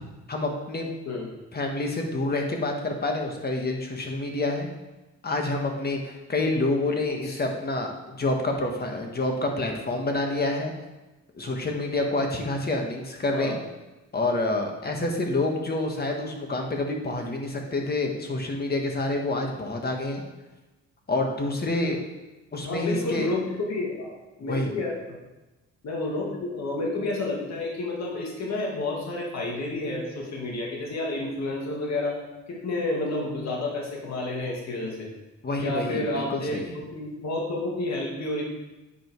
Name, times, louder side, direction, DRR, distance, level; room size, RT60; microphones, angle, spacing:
voice 1, 0.3-0.9 1.5-4.7 5.2-10.7 11.3-13.6 14.1-20.2 21.1-22.0 22.5-23.3 24.4-24.7 35.4-36.7, left 2 dB, 30° left, 2 dB, 1.6 m, -28 dB
voice 2, 13.3-13.6 22.6-24.1 24.4-25.2 25.8-32.2 32.5-35.1 35.6-38.4, left 2 dB, 60° left, -2 dB, 2.1 m, -30 dB
9.0 x 5.2 x 4.7 m, 1.1 s
cardioid pair, 90°, 30 cm